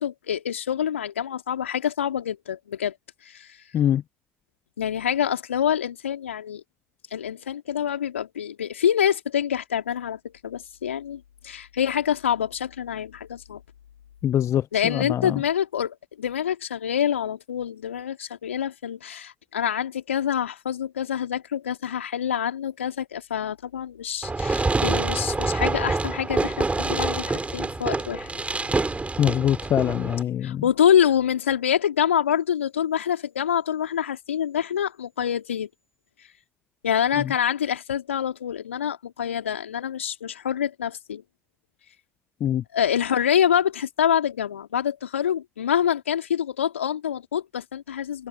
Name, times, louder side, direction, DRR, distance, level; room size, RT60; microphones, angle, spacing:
voice 1, 0.0-2.9 3.2-3.6 4.8-6.6 7.1-13.6 14.7-28.3 30.4-35.7 36.8-41.2 42.7-48.3, left 9 dB, 80° left, 3.2 m, -26 dB
voice 2, 14.2-15.4 29.2-30.6 42.4-42.6, left 10 dB, 45° left, 0.4 m, -23 dB
Fireworks, 24.2-30.2, right 3 dB, 20° right, 5.4 m, -26 dB
figure-of-eight pair, 55°, 7 cm